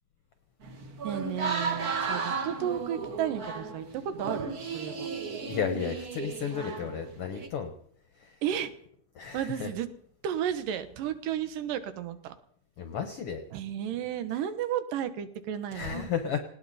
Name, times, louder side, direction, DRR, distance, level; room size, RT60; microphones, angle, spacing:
sound 1, 0.6-7.5, right 5 dB, 45° right, 1.2 m, -34 dB
voice 1, 1.0-5.1 8.4-8.7 9.3-9.9 10.2-12.4 13.5-16.1, right 10 dB, 85° right, 11 dB, 2.7 m, -33 dB
voice 2, 5.5-7.7 8.2-8.3 9.1-9.7 12.8-13.4 15.7-16.4, left 7 dB, 60° left, 7 dB, 1.6 m, -33 dB
19.0 x 18.0 x 4.2 m, 0.67 s
omnidirectional pair, 3.8 m